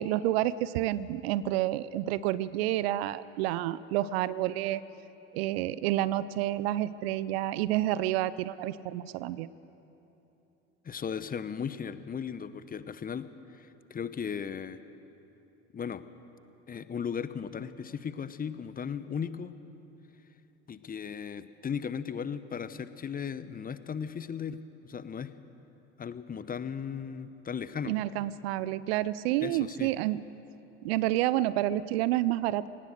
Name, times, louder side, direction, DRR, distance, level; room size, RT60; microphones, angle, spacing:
voice 1, 0.0-4.8 5.3-9.5 27.8-30.2 30.8-32.7, right 14 dB, 65° right, 18 dB, 0.7 m, -29 dB
voice 2, 10.8-14.8 15.7-16.0 16.7-19.5 20.7-24.6 24.8-25.3 26.0-27.9 29.4-29.9, left 7 dB, 25° left, 13 dB, 1.0 m, -36 dB
25.0 x 18.5 x 6.7 m, 3.0 s
figure-of-eight pair, 65°, 33 cm